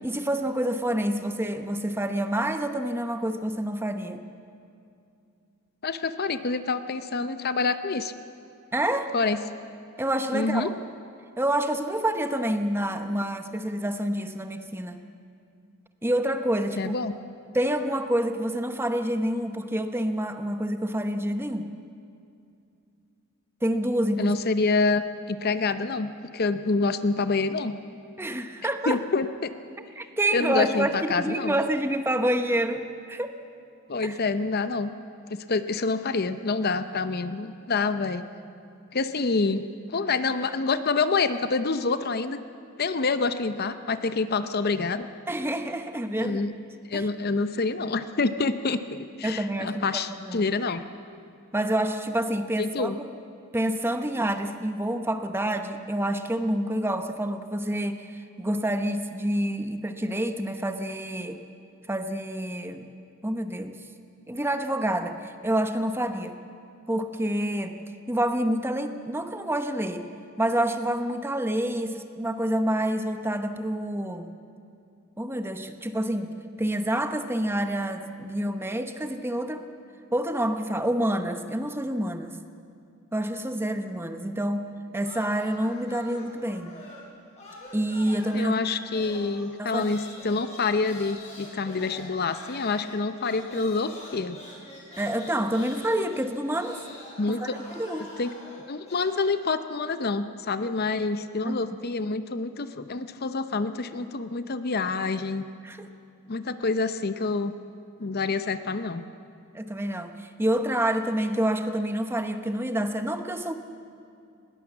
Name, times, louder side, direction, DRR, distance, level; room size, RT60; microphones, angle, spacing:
voice 1, 0.0-4.2 8.7-9.1 10.0-10.7 11.4-15.0 16.0-16.9 17.5-21.7 23.6-24.4 28.2-29.0 30.0-33.3 34.0-34.2 45.3-46.4 46.9-47.1 49.2-50.4 51.5-53.1 53.5-61.4 61.9-62.9 63.2-63.8 64.3-66.4 66.9-67.8 68.1-70.1 70.4-74.3 75.2-76.3 76.6-79.7 80.1-82.4 83.1-86.7 87.7-88.6 89.6-89.9 95.0-96.8 97.3-98.1 101.4-101.6 105.6-105.8 109.5-113.5, right 1 dB, 10° right, 8 dB, 0.9 m, -28 dB
voice 2, 5.8-8.1 9.1-9.4 10.3-10.7 16.8-17.1 24.2-25.0 25.3-27.8 28.9-29.5 30.3-31.6 33.9-34.9 35.3-38.3 38.9-39.6 39.9-42.4 42.8-45.1 46.2-46.5 46.9-50.8 52.6-53.0 88.3-94.4 97.2-97.4 98.0-98.3 98.7-105.4 106.3-107.5 108.0-109.0, left 3 dB, 45° left, 11 dB, 0.7 m, -27 dB
sound 1, 85.0-87.1 87.4-99.3, left 1 dB, 30° left, 6.8 m, -45 dB
20.5 x 18.0 x 7.3 m, 2.5 s
head